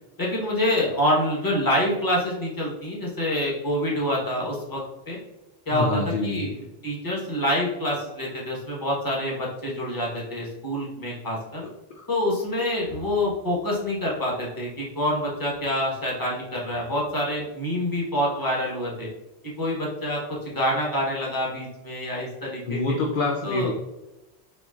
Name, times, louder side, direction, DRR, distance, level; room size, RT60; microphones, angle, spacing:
voice 1, 0.2-5.2 5.7-6.6 6.8-11.6 12.1-19.1 19.6-23.0 23.4-23.7, left 1 dB, 20° left, -4 dB, 1.0 m, -26 dB
voice 2, 5.7-6.5 11.6-11.7 11.9-12.0 22.7-23.7, left 2 dB, 60° left, 1 dB, 0.6 m, -26 dB
4.2 x 2.9 x 2.4 m, 1.0 s
omnidirectional pair, 1.1 m